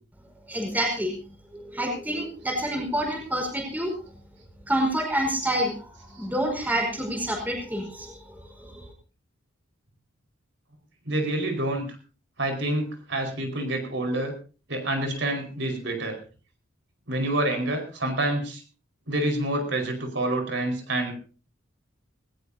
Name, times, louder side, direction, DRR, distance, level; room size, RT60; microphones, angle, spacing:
voice 1, 0.5-1.2 1.5-3.9 4.7-8.9, right 1 dB, 10° right, 1 dB, 4.9 m, -28 dB
voice 2, 11.0-11.8 12.4-14.3 14.7-16.2 17.1-18.6 19.1-21.1, right 1 dB, 60° right, 4 dB, 5.1 m, -27 dB
20.0 x 19.0 x 2.8 m, 0.37 s
head